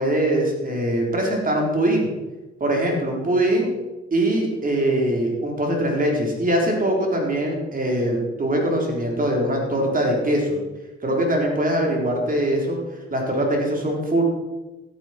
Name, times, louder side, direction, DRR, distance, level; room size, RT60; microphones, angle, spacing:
voice 1, 0.0-2.1 2.6-3.7 4.1-10.6 11.0-12.8 13.1-14.2, right 1 dB, 25° right, 0 dB, 4.0 m, -22 dB
14.0 x 10.0 x 4.5 m, 1.1 s
figure-of-eight pair, 50°, 32 cm